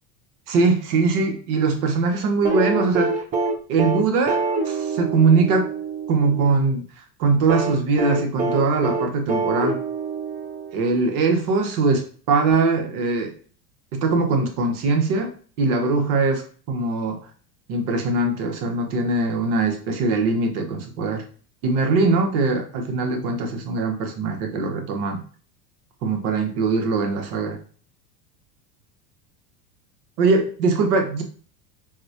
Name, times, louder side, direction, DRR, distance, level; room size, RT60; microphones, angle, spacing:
voice 1, 0.5-3.2 3.7-5.7 6.1-6.9 7.2-9.8 10.7-13.3 13.9-17.2 17.7-21.2 21.6-25.2 26.0-27.6 30.2-31.2, right 3 dB, 65° right, 4 dB, 1.0 m, -21 dB
sound 1, 2.4-6.5 7.5-11.1 12.5-12.6, right 3 dB, 20° right, 0.4 m, -25 dB
4.0 x 2.1 x 2.7 m, 0.41 s
hypercardioid pair, 95°, 48 cm